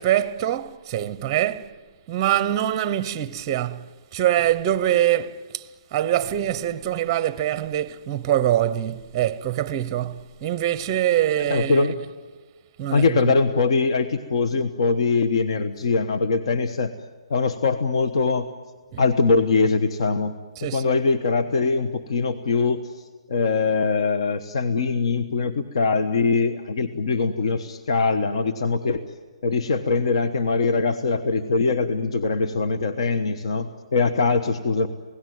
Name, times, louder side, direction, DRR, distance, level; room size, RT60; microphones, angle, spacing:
voice 1, 0.0-1.7 2.1-11.9 12.8-13.3 18.9-19.0 20.6-21.0, right 12 dB, 20° right, 0.7 m, -24 dB
voice 2, 11.5-11.9 12.9-16.9 17.3-18.5 19.0-20.3 20.7-22.8 23.3-29.0 29.4-34.9, left 4 dB, 60° left, 1.2 m, -22 dB
28.0 x 18.0 x 9.5 m
hypercardioid pair, 165°, 3 cm